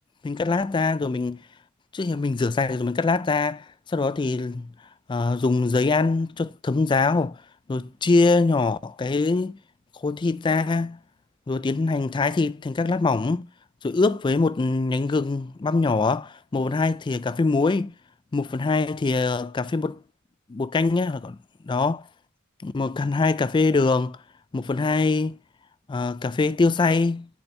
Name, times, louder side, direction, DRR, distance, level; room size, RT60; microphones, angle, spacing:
voice 1, 0.2-1.4 1.9-4.7 5.1-7.4 7.7-9.6 9.9-11.0 11.5-13.5 13.8-17.9 18.3-20.0 20.5-21.4 21.6-22.0 22.6-24.2 24.5-25.4 25.9-27.4, left 3 dB, 20° left, 0.3 m, -23 dB
10.0 x 4.3 x 3.3 m
head